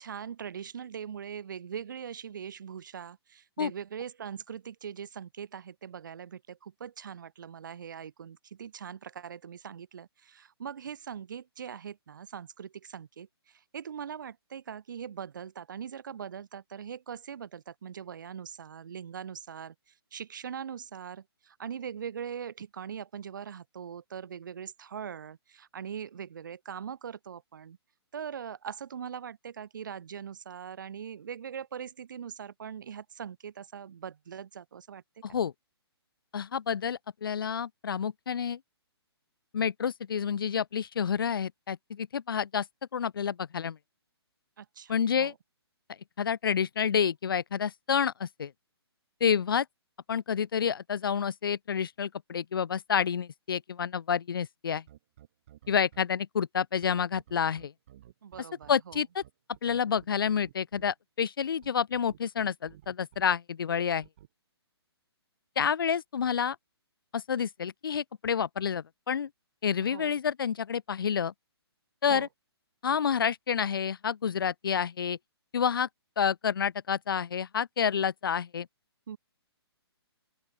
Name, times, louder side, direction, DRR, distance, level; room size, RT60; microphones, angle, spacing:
voice 1, 0.0-19.7 20.1-27.8 28.1-35.0 44.6-45.3 58.2-59.0 69.8-70.1 72.1-72.3 79.1-79.2, right 8 dB, 50° right, 1.2 m, -41 dB
voice 2, 35.2-35.5 36.3-38.6 39.5-42.7 42.9-43.8 44.9-45.3 46.2-48.5 49.2-49.7 50.1-54.8 55.7-57.7 58.7-59.2 59.6-64.1 65.6-66.6 67.1-69.3 69.6-71.3 72.0-72.3 72.8-75.2 75.5-75.9 76.2-78.7, left 7 dB, 55° left, 0.7 m, -29 dB
sound 1, 54.7-56.0 56.8-60.8 61.6-63.2 64.0-64.3, right 12 dB, 30° right, 5.9 m, -54 dB
open air
hypercardioid pair, 175°, 14 cm